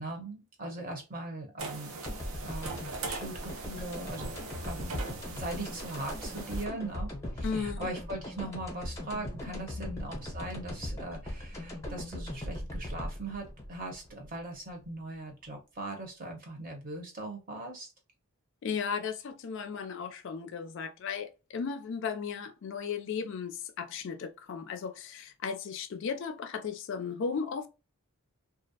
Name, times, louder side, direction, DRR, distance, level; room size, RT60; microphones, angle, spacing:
voice 1, 0.0-2.0 2.4-7.1 7.4-17.9, right 2 dB, 40° right, 0.8 m, -40 dB
sound 1, 1.6-6.6, right 4 dB, 70° right, 0.5 m, -41 dB
sound 2, 2.0-14.9, left 1 dB, 15° left, 0.7 m, -39 dB
voice 2, 7.4-7.9 9.4-9.5 18.6-27.7, left 6 dB, 55° left, 0.3 m, -35 dB
2.4 x 2.0 x 2.6 m
head